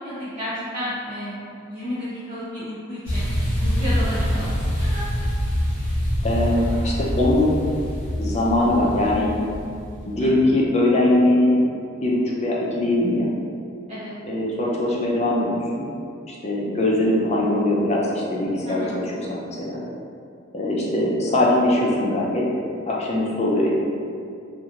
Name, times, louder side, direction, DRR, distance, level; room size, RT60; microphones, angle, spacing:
voice 1, 0.0-1.4 1.7-3.3 3.6-4.5 4.8-5.1 10.2-10.3 13.9-14.1 18.6-18.9, equal, 35° right, -11 dB, 0.6 m, -31 dB
sound 1, 3.1-10.3, equal, 5° left, 1.0 m, -25 dB
voice 2, 6.2-7.5 8.2-9.3 10.1-11.6 12.0-13.3 14.3-15.9 16.3-18.8 19.3-19.8 20.5-23.7, left 1 dB, 35° left, -4 dB, 0.5 m, -21 dB
2.9 x 2.5 x 2.4 m, 2.5 s
head